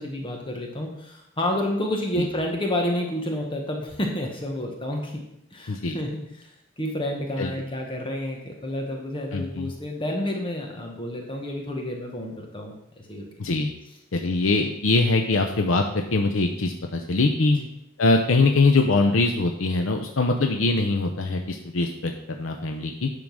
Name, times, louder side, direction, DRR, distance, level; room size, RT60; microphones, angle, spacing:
voice 1, 0.0-5.1 5.5-6.5 6.8-12.7 13.1-13.3 17.5-17.7, left 1 dB, 25° left, 1 dB, 1.2 m, -29 dB
voice 2, 9.3-9.7 13.4-13.7 14.1-17.6 18.0-22.1 22.4-23.1, left 3 dB, 70° left, 4 dB, 0.7 m, -22 dB
10.5 x 3.8 x 6.3 m, 0.81 s
head